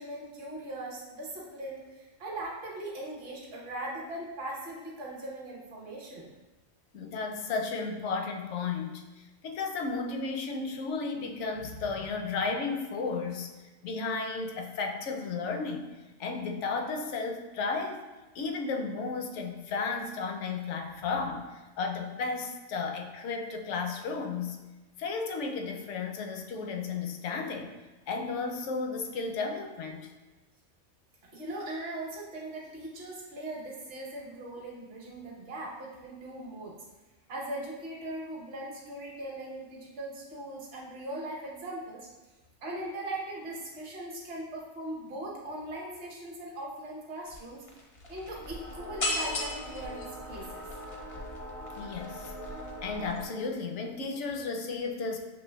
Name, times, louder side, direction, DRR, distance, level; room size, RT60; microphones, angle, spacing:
voice 1, 0.0-6.3 31.3-36.7 37.3-42.1 42.6-47.6 48.1-50.6, right 1 dB, 55° right, -4 dB, 1.2 m, -39 dB
voice 2, 6.9-9.0 9.4-13.5 13.8-15.9 16.2-18.0 18.3-24.6 25.0-27.7 28.1-30.1 51.8-52.3 52.8-55.2, left 4 dB, 75° left, 3 dB, 0.9 m, -33 dB
sound 1, 47.3-47.4 47.7-53.2, left 1 dB, 45° left, 0.5 m, -37 dB
6.6 x 3.1 x 2.2 m, 1.1 s
omnidirectional pair, 1.2 m